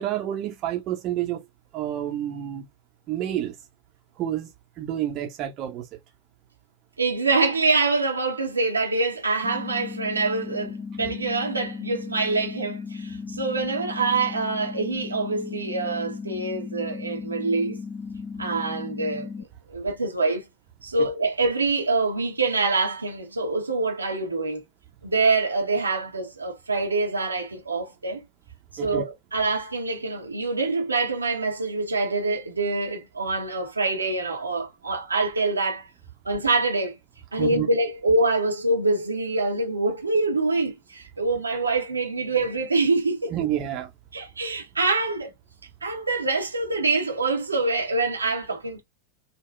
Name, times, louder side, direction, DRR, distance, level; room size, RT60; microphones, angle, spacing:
voice 1, 0.0-1.4 1.7-2.6 3.1-3.5 4.2-4.5 4.8-5.9 28.8-29.0 37.4-37.7 43.3-43.9, right 11 dB, 35° right, 0.8 m, -29 dB
voice 2, 7.0-17.8 18.4-20.4 20.8-24.6 25.0-28.2 28.8-35.9 36.2-37.0 37.3-43.3 44.1-45.3 45.8-48.8, right 3 dB, 80° right, 0.8 m, -25 dB
sound 1, 9.4-19.4, left 5 dB, 10° left, 0.4 m, -36 dB
3.5 x 2.2 x 2.2 m
figure-of-eight pair, 90°, 0 cm